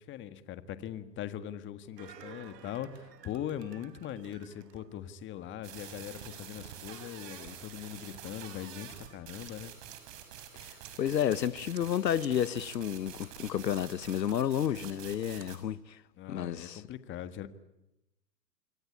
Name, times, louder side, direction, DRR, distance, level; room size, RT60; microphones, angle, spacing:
voice 1, 0.0-9.7 16.2-17.5, left 10 dB, 25° left, 1.6 m, -41 dB
sound 1, 2.0-5.7 6.1-6.2, right 8 dB, 80° right, 2.5 m, -54 dB
sound 2, 5.6-15.6, right 9 dB, 50° right, 6.1 m, -47 dB
sound 3, 9.5-9.6 9.9-10.4 10.8-10.9 11.3-11.4 11.7-11.8 12.2-12.3 12.7-12.8 13.2-13.3 13.7-14.3 14.7-14.9 15.2-15.5, right 16 dB, 30° right, 2.0 m, -53 dB
voice 2, 11.0-15.8 16.3-16.8, left 10 dB, 85° left, 1.2 m, -31 dB
26.5 x 23.5 x 8.6 m
hypercardioid pair, 130°, 49 cm